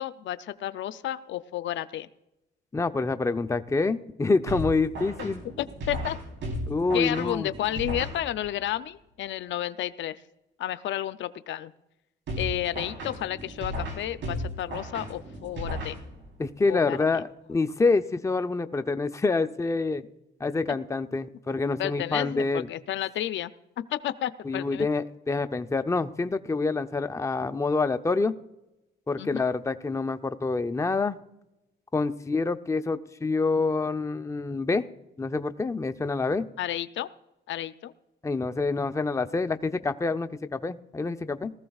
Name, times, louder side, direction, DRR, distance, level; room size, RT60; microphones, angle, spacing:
voice 1, 0.0-2.1 5.2-5.3 5.6-6.2 6.9-10.2 10.6-11.7 12.4-16.0 16.7-17.2 21.8-23.5 23.9-24.9 29.2-29.4 36.6-37.1 37.5-37.9, left 12 dB, 70° left, 13 dB, 0.5 m, -31 dB
voice 2, 2.7-5.4 6.7-7.5 16.4-20.0 20.4-22.7 24.4-28.3 29.1-31.2 31.9-34.8 35.2-36.4 38.2-41.5, left 3 dB, 15° left, 8 dB, 0.6 m, -27 dB
sound 1, 4.5-8.7 12.3-16.5, equal, 65° right, 3.8 m, -35 dB
19.5 x 14.5 x 2.4 m, 0.92 s
cardioid pair, 90°, 20 cm